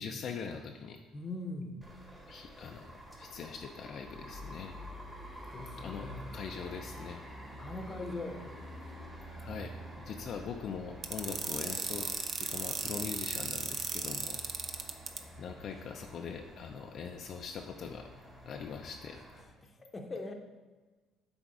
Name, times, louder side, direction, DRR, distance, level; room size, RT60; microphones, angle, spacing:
voice 1, 0.0-1.0 2.3-4.7 5.8-6.1 6.3-7.2 9.4-14.4 15.4-18.1 18.5-19.2, left 6 dB, 50° left, 3 dB, 0.5 m, -42 dB
voice 2, 1.1-1.9 5.5-6.4 7.6-8.5 19.1-19.2 19.6-20.3, left 2 dB, 25° left, 4 dB, 0.8 m, -41 dB
sound 1, 1.8-19.4, equal, 10° right, 1.5 m, -49 dB
sound 2, 11.0-15.2, right 5 dB, 45° right, 0.6 m, -35 dB
8.1 x 3.5 x 4.8 m, 1.3 s
cardioid pair, 110°, 0 cm